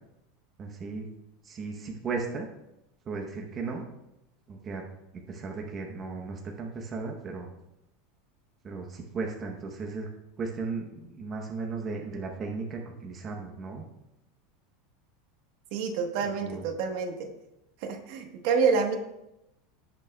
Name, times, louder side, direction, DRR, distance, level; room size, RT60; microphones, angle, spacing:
voice 1, 0.6-1.1 1.4-2.5 3.1-3.8 4.5-4.8 5.3-7.5 8.6-10.1 10.4-13.8 16.4-16.6, right 4 dB, 20° right, 0 dB, 0.8 m, -35 dB
voice 2, 15.7-17.3 17.8-19.0, right 5 dB, 55° right, 4 dB, 1.2 m, -27 dB
17.0 x 6.1 x 2.3 m, 0.90 s
supercardioid pair, 170°, 0 cm